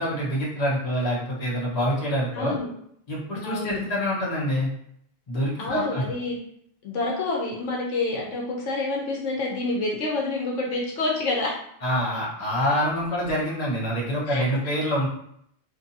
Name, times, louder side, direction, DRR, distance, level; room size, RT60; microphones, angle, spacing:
voice 1, 0.0-2.5 3.1-4.7 5.3-6.0 11.8-15.1, equal, 35° left, -5 dB, 0.9 m, -26 dB
voice 2, 2.3-2.7 3.4-3.8 5.6-6.4 6.8-11.6 14.3-14.4, left 2 dB, 75° left, -2 dB, 1.0 m, -28 dB
2.6 x 2.6 x 2.6 m, 0.69 s
omnidirectional pair, 1.3 m